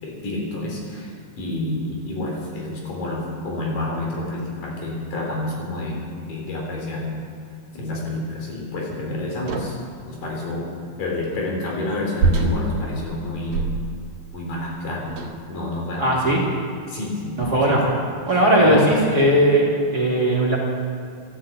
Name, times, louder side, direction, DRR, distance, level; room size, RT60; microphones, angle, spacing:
voice 1, 0.0-6.0 6.3-7.2 7.7-9.7 10.1-10.7 11.0-13.7 14.3-15.2 15.5-16.4 16.9-19.0, left 2 dB, 85° left, -2 dB, 5.2 m, -29 dB
sound 1, 9.4-10.0 12.2-14.2 15.1-15.5 16.4-16.6 17.4-17.8, right 3 dB, 90° right, 3.3 m, -25 dB
voice 2, 16.0-16.4 17.5-17.8 18.3-19.7 19.9-20.6, right 1 dB, 30° right, -3 dB, 2.9 m, -17 dB
14.5 x 11.5 x 8.2 m, 2.4 s
omnidirectional pair, 3.8 m